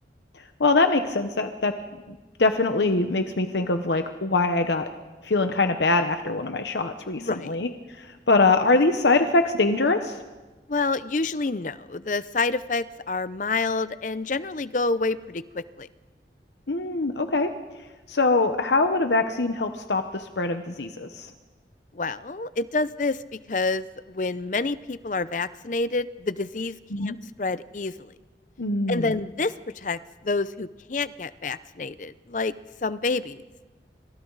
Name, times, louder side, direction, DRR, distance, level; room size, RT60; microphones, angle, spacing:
voice 1, 0.3-1.7 2.4-4.9 5.2-10.2 16.7-17.5 18.1-21.3 26.9-27.2 28.6-29.2, left 3 dB, 80° left, 7 dB, 1.1 m, -23 dB
voice 2, 7.2-7.5 10.7-15.9 21.9-23.2 23.5-26.8 27.0-27.1 27.4-28.1 28.9-32.5 32.8-33.4, left 3 dB, 45° left, 15 dB, 0.6 m, -28 dB
28.0 x 26.5 x 4.1 m, 1.3 s
head